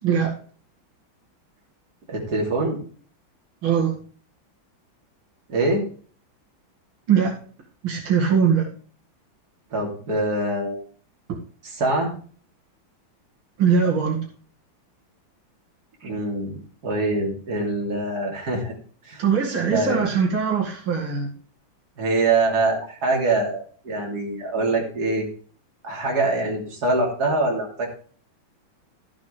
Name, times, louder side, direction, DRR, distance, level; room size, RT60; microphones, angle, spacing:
voice 1, 0.0-0.3 3.6-4.0 7.1-7.4 7.8-8.7 11.3-11.4 13.6-14.3 19.2-21.3, right 6 dB, 85° right, -2 dB, 2.9 m, -21 dB
voice 2, 2.1-2.8 5.5-5.8 9.7-10.8 11.6-12.1 16.0-18.7 19.0-19.2 19.7-20.1 22.0-25.3 25.8-27.9, right 2 dB, 50° right, -1 dB, 3.3 m, -24 dB
13.5 x 7.5 x 3.3 m, 0.44 s
omnidirectional pair, 2.2 m